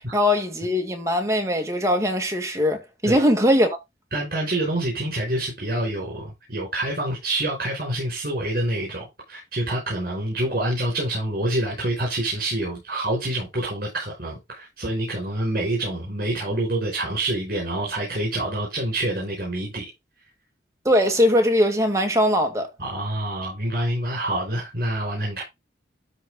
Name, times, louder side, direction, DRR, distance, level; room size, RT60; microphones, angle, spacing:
voice 1, 0.1-3.8 20.9-22.7, equal, 15° right, 1.9 m, -21 dB
voice 2, 4.1-19.9 22.8-25.4, right 1 dB, 55° right, 5.2 m, -27 dB
13.0 x 4.3 x 3.8 m
head